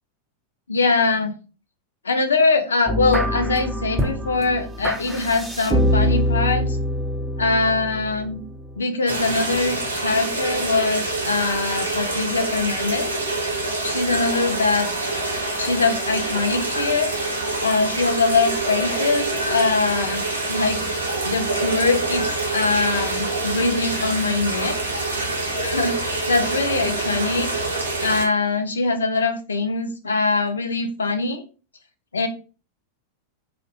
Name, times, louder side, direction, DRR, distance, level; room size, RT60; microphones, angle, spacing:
voice 1, 0.7-1.3 2.0-6.7 7.4-8.4 8.8-13.1 13.8-14.9 15.6-17.1 17.6-24.8 25.6-27.5 28.0-31.4 32.1-32.3, left 3 dB, 70° left, 7 dB, 0.4 m, -22 dB
sound 1, 2.9-8.8, equal, 10° right, 0.3 m, -24 dB
sound 2, 9.1-28.2, right 2 dB, 80° right, 0.5 m, -26 dB
2.5 x 2.1 x 2.5 m, 0.35 s
figure-of-eight pair, 90°, 0 cm